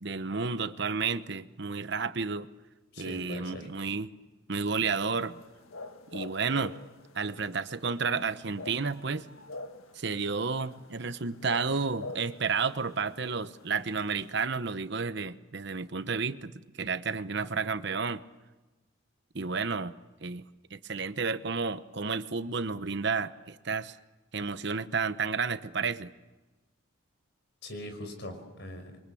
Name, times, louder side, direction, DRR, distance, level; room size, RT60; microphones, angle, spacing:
voice 1, 0.0-2.5 3.0-4.1 4.5-5.4 6.1-6.8 7.1-9.3 9.9-16.5 16.8-18.2 19.3-19.9 20.2-20.4 20.7-24.0 24.3-26.1, right 5 dB, 55° right, 12 dB, 1.0 m, -31 dB
voice 2, 2.9-3.7 27.6-29.0, left 1 dB, 55° left, 6 dB, 5.5 m, -41 dB
sound 1, 5.1-14.4, left 2 dB, 90° left, 1.7 m, -46 dB
27.5 x 23.5 x 8.5 m, 1.1 s
head